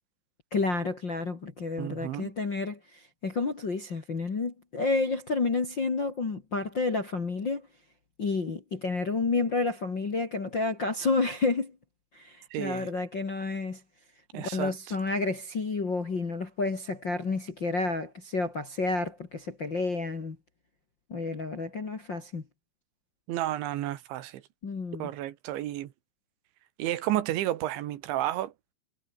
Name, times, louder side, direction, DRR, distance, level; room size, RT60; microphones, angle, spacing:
voice 1, 0.5-7.7 8.2-11.8 12.1-13.8 14.3-20.4 21.1-22.4 24.6-25.1, left 3 dB, 35° left, 1.9 m, -30 dB
voice 2, 1.8-2.3 12.5-12.9 14.3-14.7 23.3-24.4 25.0-25.9 26.8-28.5, right 13 dB, 70° right, 3.7 m, -31 dB
omnidirectional pair, 5.7 m